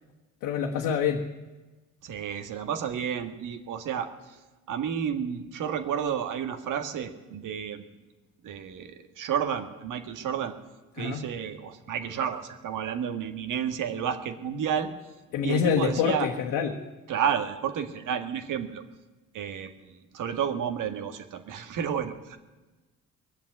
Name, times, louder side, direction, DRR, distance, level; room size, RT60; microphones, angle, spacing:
voice 1, 0.4-1.3 11.0-11.3 15.3-16.8, left 8 dB, 80° left, 1 dB, 1.3 m, -26 dB
voice 2, 2.0-4.1 4.7-7.8 8.4-10.5 11.0-14.9 15.4-16.3 17.1-18.8 19.3-22.4, right 8 dB, 70° right, 8 dB, 1.7 m, -31 dB
20.5 x 7.4 x 9.4 m, 1.2 s
supercardioid pair, 70°, 32 cm